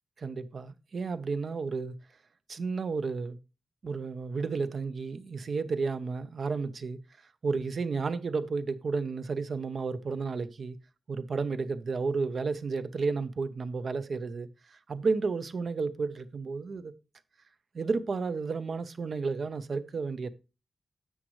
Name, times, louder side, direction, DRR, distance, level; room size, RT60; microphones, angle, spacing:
voice 1, 0.2-1.9 2.5-3.4 3.8-7.0 7.4-10.8 11.1-16.9 17.7-20.3, right 4 dB, 60° right, 0.7 m, -32 dB
10.0 x 7.4 x 3.1 m
wide cardioid pair, 140°, 0 cm